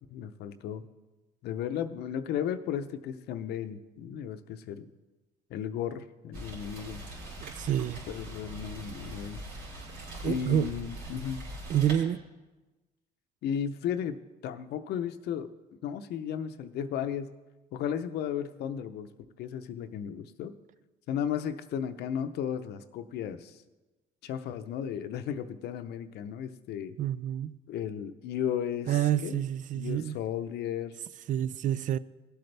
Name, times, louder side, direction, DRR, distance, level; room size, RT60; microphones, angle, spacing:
voice 1, 0.1-0.9 1.4-4.9 5.5-7.0 8.1-9.4 10.2-11.4 13.4-14.2 14.4-15.5 15.8-17.3 17.7-19.1 19.4-20.5 21.1-23.6 24.2-27.0 27.7-29.4 29.7-31.0, left 9 dB, 75° left, 0.7 m, -34 dB
Rain, 6.3-11.9, right 1 dB, 75° right, 4.6 m, -42 dB
voice 2, 7.4-8.0 10.0-10.7 11.7-12.2 27.0-27.6 28.9-30.2 31.3-32.0, right 10 dB, 50° right, 0.4 m, -28 dB
18.0 x 8.0 x 3.4 m
cardioid pair, 110°, 17 cm